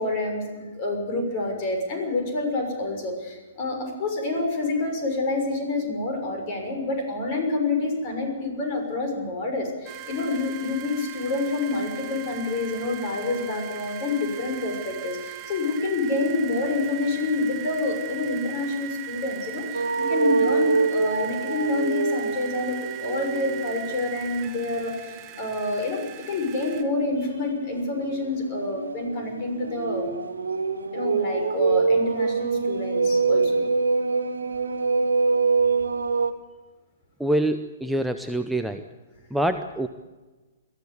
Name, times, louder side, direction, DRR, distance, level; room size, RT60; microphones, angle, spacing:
voice 1, 0.0-30.1 30.9-33.7, left 2 dB, 40° left, 3 dB, 6.5 m, -28 dB
sound 1, 9.8-26.8, right 15 dB, 20° right, 2.0 m, -39 dB
sound 2, 19.7-23.9 24.3-24.6 27.1-36.3, right 4 dB, 70° right, 1.4 m, -25 dB
voice 2, 37.2-38.9 39.3-39.9, right 1 dB, ahead, 7 dB, 0.7 m, -25 dB
22.5 x 14.5 x 8.3 m, 1.2 s
figure-of-eight pair, 115°, 0 cm